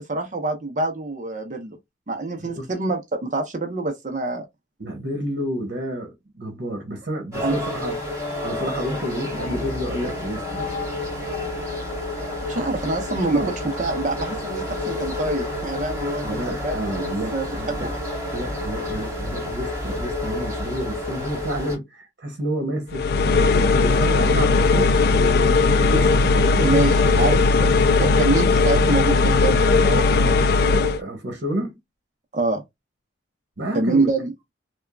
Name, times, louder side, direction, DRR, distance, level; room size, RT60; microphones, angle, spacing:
voice 1, 0.0-1.8 2.1-4.5 7.4-7.5 12.5-17.8 26.6-27.4 27.7-31.1 32.3-32.6 33.7-34.3, right 3 dB, 40° right, 0.7 m, -26 dB
voice 2, 4.8-8.0 8.4-10.7 11.0-11.1 13.3-13.5 16.2-17.9 18.3-26.9 27.2-27.4 31.0-31.8 33.6-34.1, right 1 dB, 55° right, 1.1 m, -30 dB
sound 1, 7.3-21.8, left 1 dB, 15° right, 2.1 m, -30 dB
sound 2, 9.3-21.0, left 1 dB, 5° left, 2.0 m, -38 dB
sound 3, 22.9-31.0, left 3 dB, 55° left, 0.3 m, -18 dB
3.5 x 2.3 x 2.3 m
head